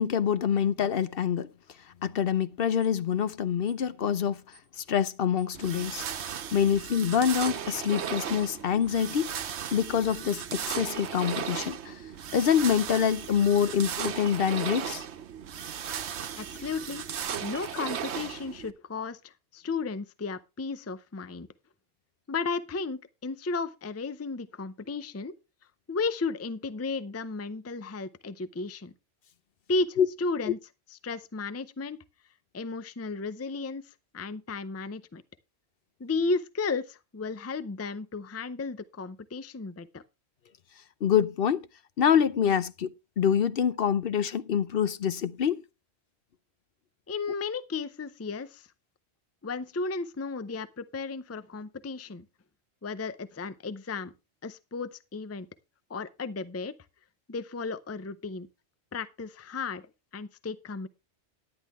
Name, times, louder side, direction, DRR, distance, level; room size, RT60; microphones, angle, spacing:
voice 1, 0.0-1.5 2.0-4.4 4.8-6.0 6.5-9.4 9.7-12.0 12.3-15.1 30.0-30.1 30.5-30.6 41.0-41.7 42.0-42.9 43.2-45.6, left 8 dB, 60° left, 0.9 m, -26 dB
sound 1, 2.8-3.0 3.7-3.8 4.5-4.7 5.4-5.5 5.8-6.0 6.2-6.4 6.7-6.8 7.1-7.3 7.5-7.7 8.0-8.1 8.4-8.5 8.8-9.0 9.2-9.4 9.7-9.8 10.1-10.3, right 1 dB, 85° left, 7.7 m, -58 dB
sound 2, 5.5-18.7, right 8 dB, 80° right, 1.1 m, -36 dB
voice 2, 16.4-17.0 17.4-21.5 22.3-25.3 25.9-28.9 29.7-30.6 30.9-32.0 32.5-35.2 36.0-40.0 47.1-48.7 49.4-52.2 52.8-54.1 54.4-55.5 55.9-56.7 57.3-58.5 58.9-59.9 60.1-60.9, left 4 dB, 20° left, 0.4 m, -34 dB
11.0 x 10.0 x 3.6 m
omnidirectional pair, 1.1 m